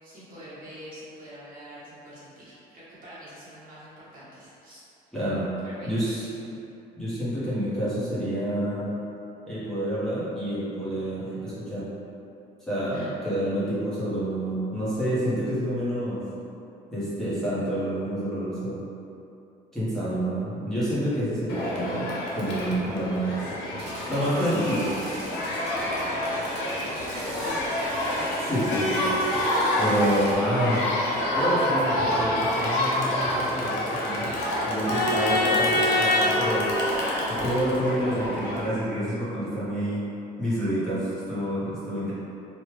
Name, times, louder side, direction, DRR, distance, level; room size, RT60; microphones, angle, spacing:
voice 1, 0.0-4.8 5.6-6.3 12.9-13.1 24.2-27.1 27.4-27.7, right 1 dB, 55° right, -10 dB, 1.3 m, -45 dB
voice 2, 5.1-5.5 5.8-6.3 7.0-8.9 9.5-11.9 12.7-16.3 16.9-18.8 19.7-22.1 22.3-23.4 24.1-24.9 28.4-29.1 29.8-30.8 31.3-34.3 34.6-36.7 37.3-40.0 40.4-42.1, equal, 5° left, -12 dB, 1.1 m, -28 dB
Crowd, 21.5-38.6, left 1 dB, 85° left, 0.6 m, -27 dB
sound 1, 23.8-30.4, right 1 dB, 75° right, 1.0 m, -43 dB
3.2 x 2.3 x 3.2 m, 2.7 s
cardioid pair, 110°, 17 cm